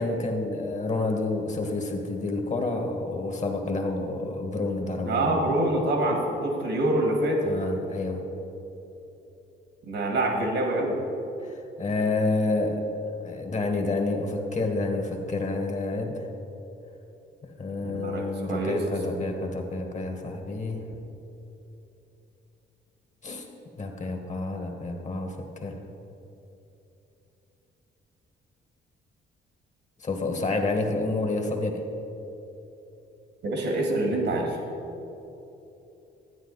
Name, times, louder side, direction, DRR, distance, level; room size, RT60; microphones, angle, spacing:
voice 1, 0.0-5.4 7.4-8.2 11.4-12.8 13.2-16.3 17.4-20.9 23.2-23.5 23.8-25.8 30.0-31.8, left 2 dB, 35° left, 3 dB, 1.5 m, -29 dB
voice 2, 5.0-7.5 9.9-11.0 17.8-18.8 33.4-34.6, right 1 dB, 70° right, 1 dB, 1.7 m, -26 dB
13.0 x 9.1 x 4.1 m, 3.0 s
cardioid pair, 90°, 20 cm